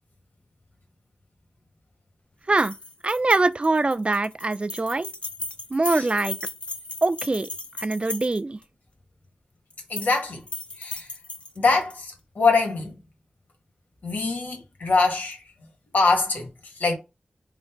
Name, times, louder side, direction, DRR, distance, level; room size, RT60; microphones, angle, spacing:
sound 1, 2.5-8.6 9.7-10.2 10.5-12.0, left 2 dB, 40° left, 0.8 m, -36 dB
voice 1, 3.0-5.1 5.7-6.4 7.0-7.5 7.8-8.6, right 2 dB, 40° right, 0.4 m, -23 dB
voice 2, 9.9-10.4 10.8-11.1 11.6-12.9 14.0-15.4 15.9-16.5 16.8-17.0, left 3 dB, 85° left, 1.3 m, -23 dB
3.8 x 2.1 x 4.4 m
cardioid pair, 50°, 3 cm